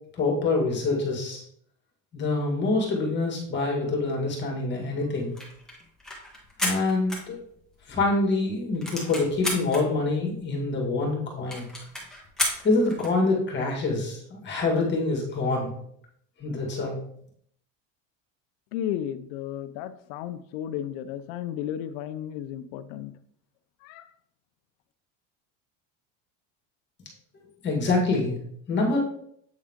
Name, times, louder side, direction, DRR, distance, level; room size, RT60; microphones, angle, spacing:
voice 1, 0.1-1.4 2.1-5.3 6.6-7.4 7.9-11.7 12.6-15.7 16.4-17.0 27.6-28.4 28.7-29.0, left 3 dB, 30° left, -1 dB, 2.1 m, -26 dB
sound 1, 5.2-7.9 8.2-8.3 8.6-9.8 10.4-10.5 10.7-10.8 11.1-11.2 11.5-13.2, left 1 dB, ahead, 1.6 m, -32 dB
voice 2, 18.7-23.1 23.8-24.0, left 10 dB, 90° left, 12 dB, 0.6 m, -33 dB
8.4 x 3.7 x 3.6 m, 0.68 s
cardioid pair, 145°, 37 cm